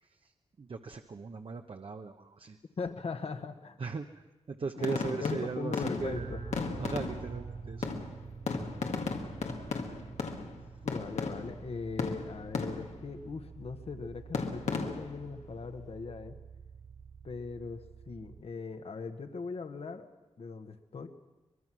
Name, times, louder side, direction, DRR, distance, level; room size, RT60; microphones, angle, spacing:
voice 1, 0.0-0.3 0.6-2.6 3.8-6.3 6.8-7.9, right 4 dB, 55° right, 5 dB, 1.0 m, -38 dB
voice 2, 2.8-3.8 4.8-6.4 10.8-16.4 17.2-20.1 20.4-21.1, left 4 dB, 60° left, 8 dB, 1.4 m, -40 dB
sound 1, 4.8-7.5 7.8-11.7 12.0-13.1 14.3-15.3, left 4 dB, 90° left, 1.9 m, -36 dB
sound 2, 6.0-18.4, right 5 dB, 75° right, 4.7 m, -47 dB
24.0 x 21.0 x 6.2 m, 1.1 s
wide cardioid pair, 80°, 11 cm